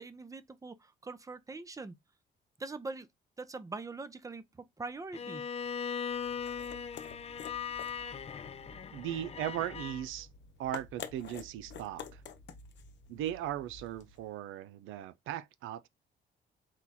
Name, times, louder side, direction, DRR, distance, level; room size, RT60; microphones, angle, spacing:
voice 1, 0.0-2.0 2.6-3.1 3.4-5.5, right 3 dB, 15° right, 0.6 m, -43 dB
Bowed string instrument, 5.1-10.0, left 7 dB, 30° left, 0.5 m, -39 dB
sound 1, 6.1-14.3, left 6 dB, 65° left, 0.8 m, -49 dB
voice 2, 8.9-10.3 10.6-12.2 13.1-15.9, right 12 dB, 85° right, 0.4 m, -38 dB
4.5 x 2.3 x 4.0 m
cardioid pair, 90°, 20 cm